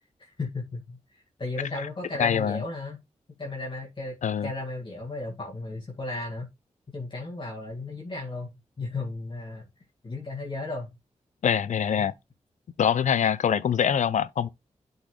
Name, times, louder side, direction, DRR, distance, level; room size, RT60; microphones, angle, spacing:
voice 1, 0.2-1.0 1.4-3.0 3.4-6.5 6.9-9.7 10.0-10.9 11.8-12.1, left 2 dB, 40° left, 1.9 m, -35 dB
voice 2, 2.2-2.6 4.2-4.5 11.4-12.1 12.8-14.5, left 8 dB, 75° left, 0.5 m, -24 dB
11.5 x 4.0 x 3.2 m
wide cardioid pair, 100°, 13 cm